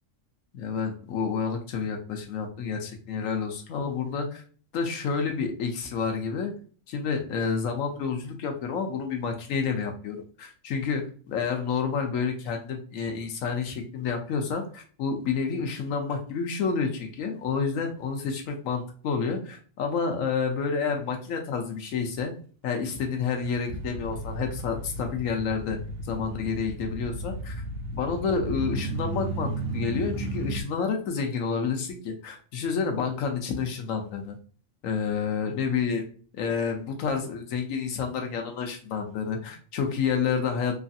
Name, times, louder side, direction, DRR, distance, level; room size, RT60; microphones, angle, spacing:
voice 1, 0.5-4.4 4.7-6.5 6.9-22.3 22.6-25.8 26.1-27.6 27.9-34.4 34.8-36.0 36.3-40.8, left 5 dB, 80° left, 4 dB, 1.0 m, -29 dB
sound 1, 23.4-30.6, right 2 dB, 90° right, 1.0 m, -34 dB
3.0 x 2.6 x 2.4 m, 0.42 s
omnidirectional pair, 1.4 m